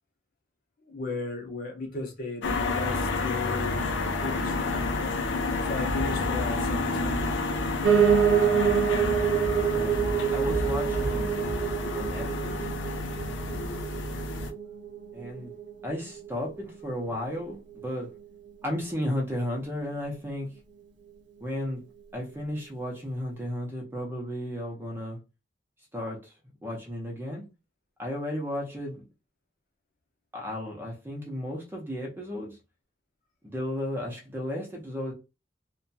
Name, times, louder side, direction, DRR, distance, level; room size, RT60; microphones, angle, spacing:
voice 1, 0.8-5.2 5.6-7.3, left 2 dB, 45° left, 0.8 m, -36 dB
sound 1, 2.4-14.5, left 3 dB, 70° left, 0.5 m, -29 dB
Piano, 7.8-16.9 17.3-18.5 18.8-18.9 19.1-19.2 19.4-19.5 20.1-20.2, right 8 dB, 70° right, 0.6 m, -27 dB
voice 2, 10.3-11.3 11.9-12.6 15.1-15.5 15.8-18.1 18.6-20.5 21.4-21.8 22.1-25.2 25.9-26.3 26.6-27.4 28.0-29.0 30.3-32.6 33.4-35.1, left 1 dB, 10° right, 0.7 m, -34 dB
2.8 x 2.2 x 2.7 m
head